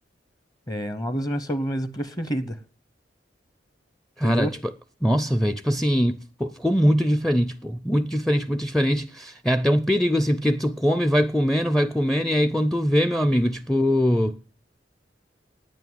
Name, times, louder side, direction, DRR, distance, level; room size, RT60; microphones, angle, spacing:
voice 1, 0.7-2.6 4.2-4.5, equal, 20° left, 0.8 m, -28 dB
voice 2, 4.2-4.7 5.0-14.4, equal, 5° left, 0.5 m, -22 dB
9.4 x 8.4 x 9.4 m
head